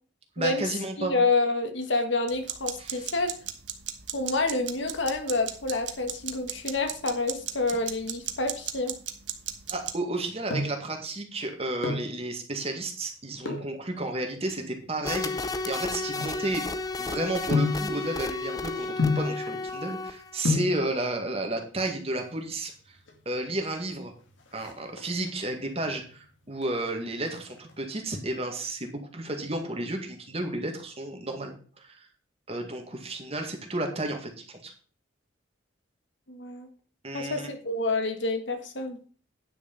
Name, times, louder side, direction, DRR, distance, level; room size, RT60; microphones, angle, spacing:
voice 1, 0.4-1.1 2.8-3.1 9.7-16.7 17.0-23.0 23.3-24.1 24.5-32.1 32.5-34.7 37.0-37.5, right 2 dB, 30° right, 4 dB, 1.9 m, -32 dB
voice 2, 1.0-3.3 4.1-8.9 36.3-36.7 37.1-39.0, left 3 dB, 75° left, 6 dB, 1.7 m, -28 dB
sound 1, 2.3-9.9, right 10 dB, 70° right, 1.2 m, -38 dB
sound 2, 10.1-10.9 11.6-12.2 13.4-13.8 14.5-16.9 17.5-17.9 19.0-19.4 20.1-20.2 20.4-20.8 21.9-22.5 22.8-22.9 23.1-23.2 23.6-24.0 24.3-25.3 25.8-26.2 26.6-27.7 28.0-28.1, left 3 dB, 90° left, 2.5 m, -30 dB
sound 3, 15.0-20.4, left 3 dB, 20° left, 0.6 m, -33 dB
9.7 x 6.4 x 5.3 m, 0.41 s
head